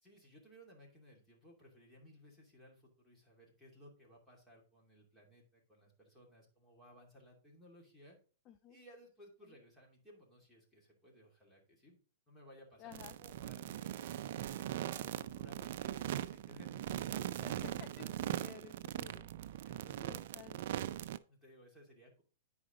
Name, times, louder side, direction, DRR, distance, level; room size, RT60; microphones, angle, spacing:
voice 1, 0.0-8.2 8.7-12.0 12.3-14.2 14.5-18.4 19.6-20.1 21.3-22.2, equal, 5° left, -3 dB, 2.6 m, -60 dB
voice 2, 8.5-8.8 9.4-9.5 12.8-13.1 17.4-18.1 18.4-19.8 20.1-20.6, left 10 dB, 30° left, 9 dB, 0.5 m, -54 dB
sound 1, 12.9-21.2, right 12 dB, 60° right, 0.4 m, -40 dB
9.5 x 5.0 x 3.8 m, 0.38 s
hypercardioid pair, 150°, 0 cm